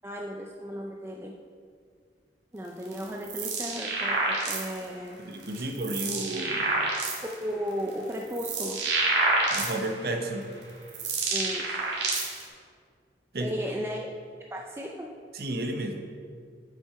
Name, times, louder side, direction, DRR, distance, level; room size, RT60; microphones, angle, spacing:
voice 1, 0.0-1.3 2.5-5.2 5.6-5.7 7.4-8.8 11.3-11.6 13.4-14.1 14.5-15.1, equal, 15° right, 0 dB, 0.4 m, -35 dB
sound 1, 2.8-4.8 5.4-7.3 7.9-10.0 10.6-12.4, right 2 dB, 80° right, 1.9 m, -28 dB
voice 2, 5.2-6.7 9.5-10.5 13.3-13.5 15.3-16.0, right 1 dB, 55° right, 4 dB, 0.8 m, -32 dB
7.9 x 5.9 x 4.6 m, 2.1 s
head